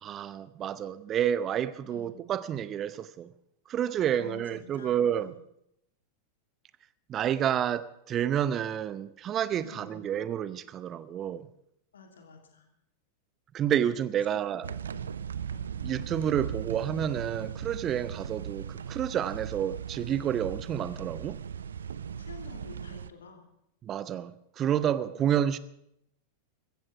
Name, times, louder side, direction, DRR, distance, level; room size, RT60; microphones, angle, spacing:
voice 1, 0.0-3.3 3.7-5.3 7.1-11.5 13.5-14.7 15.8-21.4 23.8-25.6, right 9 dB, 30° right, 0.7 m, -29 dB
voice 2, 4.1-5.3 9.6-10.1 11.9-12.7 14.5-15.1 15.5-15.7 22.2-23.4 25.1-25.4, left 4 dB, 70° left, 2.8 m, -49 dB
sound 1, 14.6-23.1, right 8 dB, 65° right, 0.5 m, -38 dB
15.5 x 14.0 x 5.9 m
figure-of-eight pair, 90°, 0 cm